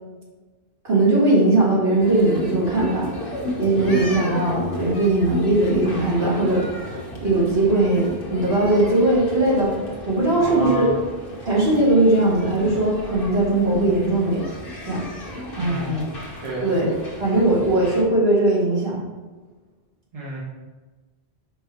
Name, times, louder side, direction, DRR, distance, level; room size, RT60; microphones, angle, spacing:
voice 1, 0.8-3.1 3.6-6.7 7.2-9.8 10.1-10.9 11.4-14.4 14.8-15.0 15.6-16.1 16.6-16.9 17.2-19.0, right 2 dB, 65° right, -6 dB, 2.0 m, -19 dB
sound 1, 2.0-18.0, left 1 dB, 60° left, 1.2 m, -33 dB
voice 2, 10.4-10.9 15.6-16.0 16.4-16.7 20.1-20.4, right 1 dB, 35° right, -6 dB, 1.3 m, -31 dB
4.9 x 4.7 x 4.2 m, 1.3 s
omnidirectional pair, 1.1 m